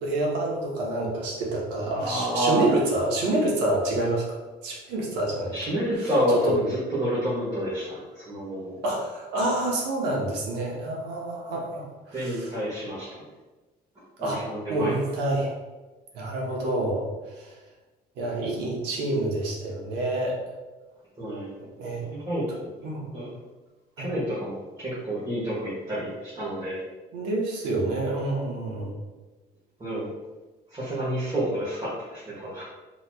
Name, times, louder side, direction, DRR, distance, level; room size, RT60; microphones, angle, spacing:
voice 1, 0.0-4.4 4.6-5.5 6.5-6.6 8.8-12.5 14.2-14.4 14.7-15.5 16.1-17.0 17.4-17.5 18.2-20.4 21.8-22.0 22.8-23.1 24.0-24.1 27.1-28.9, right 2 dB, 90° right, -2 dB, 0.9 m, -27 dB
voice 2, 1.9-2.7 5.5-8.7 12.1-13.2 14.2-14.9 21.2-21.5 22.1-22.4 23.1-23.4 24.0-26.8 29.8-30.1 30.7-32.6, equal, 25° right, -9 dB, 1.3 m, -29 dB
4.0 x 3.0 x 2.2 m, 1.2 s
cardioid pair, 110°, 17 cm